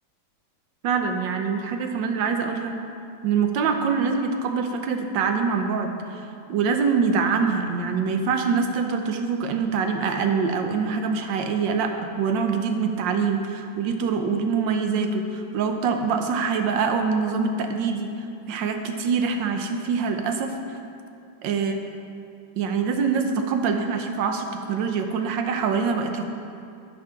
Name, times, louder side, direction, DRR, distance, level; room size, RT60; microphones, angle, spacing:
voice 1, 0.8-2.7 3.2-11.9 12.2-18.1 18.5-20.8 21.4-21.7 22.6-26.3, right 5 dB, 75° right, 5 dB, 1.4 m, -24 dB
11.5 x 5.0 x 5.7 m, 2.5 s
omnidirectional pair, 2.1 m